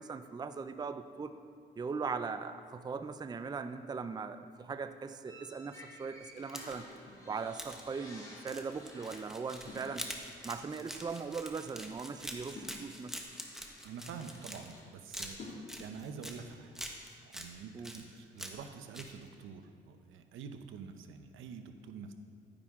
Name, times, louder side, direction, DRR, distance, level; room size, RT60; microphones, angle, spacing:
voice 1, 0.0-1.3 1.8-6.9 7.2-10.1 10.4-13.2 17.7-17.9, right 5 dB, 20° right, 10 dB, 0.4 m, -39 dB
sound 1, 5.2-10.7 11.0-11.2 12.4-12.6 13.2-14.9, left 1 dB, 20° left, 3.0 m, -55 dB
Pepper Mill, 6.4-7.0 7.6-7.8 8.4-14.8 15.1-16.4 16.7-17.5 17.8-18.7 18.9-19.1, equal, ahead, 1.2 m, -44 dB
sound 2, 7.1-8.0 9.7-10.6 12.5-14.5 15.4-16.1, left 2 dB, 55° left, 2.4 m, -51 dB
voice 2, 13.8-16.8 17.2-22.1, right 6 dB, 80° right, 7 dB, 0.8 m, -47 dB
11.0 x 10.0 x 3.6 m, 2.2 s
cardioid pair, 90°, 20 cm